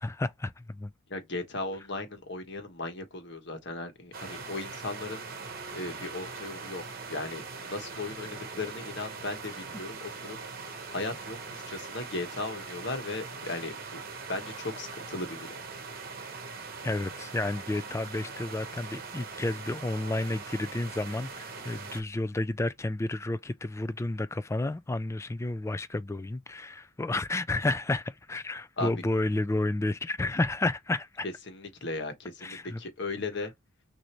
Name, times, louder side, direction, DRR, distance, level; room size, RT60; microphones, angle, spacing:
voice 1, 0.0-0.9 16.8-31.3 32.4-32.8, left 2 dB, 15° left, 0.3 m, -31 dB
voice 2, 1.1-5.2 5.7-10.4 10.9-13.7 14.3-15.6 28.8-28.9 31.2-33.5, left 2 dB, 60° left, 1.3 m, -37 dB
sound 1, 4.1-22.0, right 4 dB, 45° right, 1.0 m, -41 dB
6.3 x 2.7 x 3.0 m
head